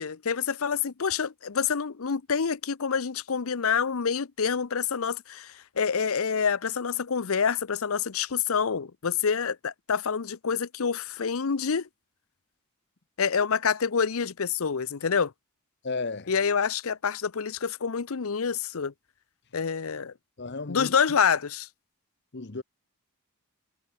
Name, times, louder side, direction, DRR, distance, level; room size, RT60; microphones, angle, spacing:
voice 1, 0.0-11.9 13.2-15.3 16.3-18.9 19.5-20.1 20.7-21.7, left 6 dB, 70° left, 0.7 m, -27 dB
voice 2, 15.8-16.3 20.4-20.9 22.3-22.6, left 3 dB, 50° left, 1.0 m, -33 dB
head